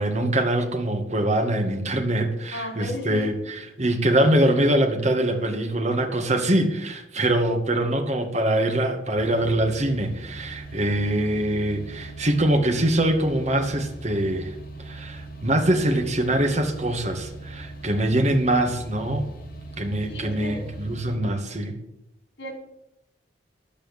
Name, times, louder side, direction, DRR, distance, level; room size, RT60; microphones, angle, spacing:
voice 1, 0.0-3.3 3.8-14.5 14.8-19.3 19.8-21.8, right 1 dB, 40° right, 3 dB, 2.2 m, -23 dB
voice 2, 2.5-3.3 20.1-20.7 22.4-22.5, left 1 dB, 70° left, 3 dB, 4.6 m, -34 dB
sound 1, 9.2-21.2, right 2 dB, 55° left, 2.6 m, -40 dB
11.0 x 8.8 x 9.0 m, 0.84 s
head